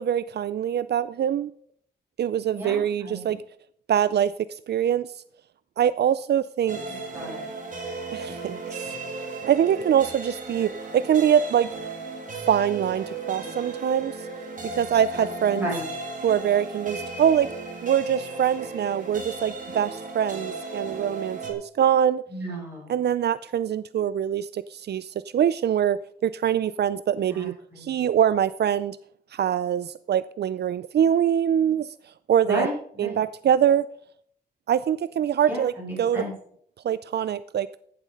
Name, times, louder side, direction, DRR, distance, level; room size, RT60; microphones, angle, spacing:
voice 1, 0.0-1.5 2.2-3.4 3.9-4.3 4.7-5.1 5.8-6.8 8.1-8.8 9.5-11.7 12.5-14.1 14.7-15.7 16.2-17.5 17.8-22.2 22.9-29.0 29.3-31.9 32.3-32.7 33.0-33.9 34.7-35.7 36.0-36.2 36.8-37.7, right 9 dB, 75° right, 16 dB, 0.4 m, -23 dB
voice 2, 2.5-3.4 6.9-7.5 15.5-15.8 22.3-23.0 27.3-27.9 32.4-33.2 35.5-36.3, right 1 dB, 15° right, -4 dB, 6.1 m, -33 dB
sound 1, 6.7-21.5, right 3 dB, 50° right, 2.7 m, -35 dB
15.0 x 7.4 x 5.1 m, 0.63 s
wide cardioid pair, 160°, 17 cm